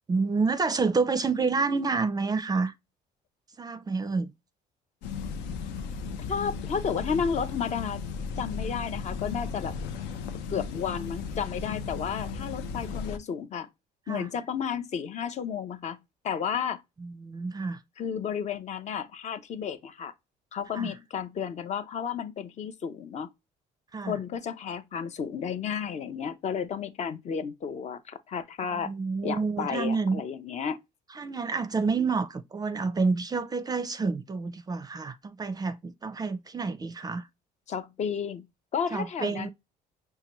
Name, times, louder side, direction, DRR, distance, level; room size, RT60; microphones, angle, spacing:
voice 1, 0.1-2.7 3.6-4.3 14.1-14.3 17.0-17.8 20.7-20.9 23.9-24.1 28.8-30.2 31.2-37.2 38.9-39.5, right 4 dB, 25° right, 0.4 m, -28 dB
sound 1, 5.0-13.2, left 5 dB, 90° left, 0.6 m, -35 dB
voice 2, 6.3-8.0 8.4-9.7 10.5-13.7 14.1-16.0 16.2-16.8 18.0-20.1 20.5-23.3 24.1-28.9 29.2-30.8 37.7-38.5 38.7-39.5, left 7 dB, 45° left, 0.5 m, -32 dB
5.5 x 2.2 x 2.9 m
cardioid pair, 110°, 17 cm